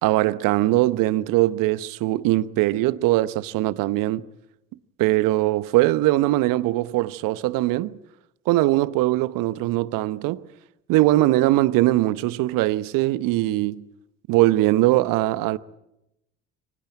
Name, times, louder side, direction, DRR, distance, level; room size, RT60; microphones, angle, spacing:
voice 1, 0.0-4.2 5.0-8.0 8.5-10.4 10.9-13.8 14.3-15.6, right 17 dB, 60° right, 1.0 m, -21 dB
24.0 x 19.5 x 9.2 m
figure-of-eight pair, 55°, 38 cm